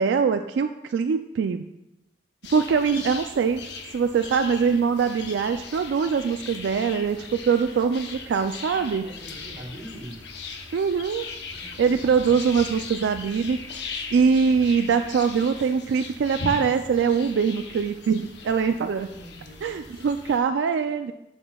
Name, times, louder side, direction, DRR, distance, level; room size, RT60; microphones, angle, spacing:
voice 1, 0.0-1.7 2.5-3.6 3.9-9.0 10.7-11.2 11.8-13.6 14.1-19.1 19.6-21.1, right 6 dB, 80° right, 8 dB, 0.3 m, -23 dB
sound 1, 2.4-20.4, left 4 dB, 70° left, 0.8 m, -39 dB
voice 2, 8.7-10.2 11.5-12.4 18.7-20.1, right 1 dB, 40° right, -2 dB, 2.2 m, -43 dB
11.5 x 6.0 x 2.3 m, 0.90 s
head